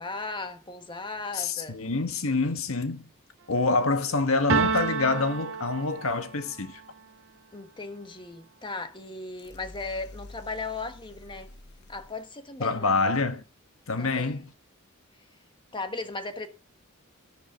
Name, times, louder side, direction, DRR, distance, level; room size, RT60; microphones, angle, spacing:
voice 1, 0.0-1.8 7.5-11.5 11.9-13.0 14.0-14.4 15.7-16.5, left 3 dB, 25° left, 1.4 m, -37 dB
voice 2, 1.3-3.0 3.5-6.8 12.6-13.4 13.9-14.5, left 3 dB, 85° left, 1.6 m, -26 dB
sound 1, 4.5-6.4, right 4 dB, 65° right, 1.0 m, -28 dB
sound 2, 9.4-12.3, left 2 dB, 55° left, 1.3 m, -48 dB
12.5 x 10.5 x 3.7 m
head